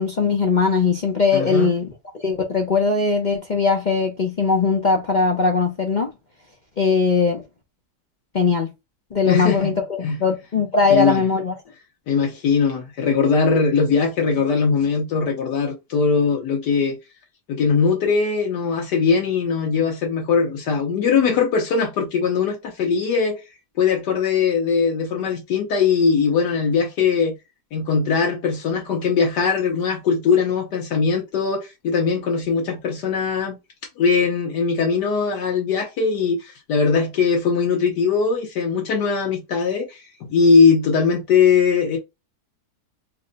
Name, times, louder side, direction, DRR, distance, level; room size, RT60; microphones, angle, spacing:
voice 1, 0.0-1.9 2.2-6.1 6.8-7.4 8.3-8.7 9.1-11.6, left 4 dB, 60° left, 0.4 m, -20 dB
voice 2, 1.3-1.7 9.2-9.7 10.0-10.2 10.9-11.2 12.1-17.0 17.5-23.4 23.8-27.3 27.7-33.6 34.0-42.0, left 5 dB, 75° left, 1.5 m, -20 dB
3.4 x 2.1 x 3.8 m
omnidirectional pair, 1.8 m